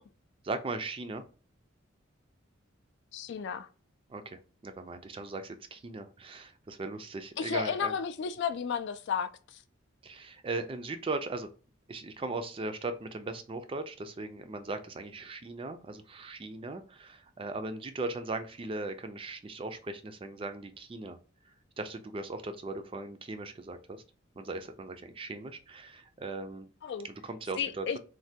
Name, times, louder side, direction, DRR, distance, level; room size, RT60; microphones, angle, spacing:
voice 1, 0.4-1.2 4.1-7.9 10.0-11.5 11.9-21.2 21.8-24.0 24.4-26.7 27.0-27.9, right 3 dB, 25° right, 0.4 m, -38 dB
voice 2, 3.1-3.7 7.4-9.6 26.8-27.1 27.6-28.0, left 7 dB, 60° left, 0.3 m, -33 dB
3.2 x 2.2 x 2.7 m
head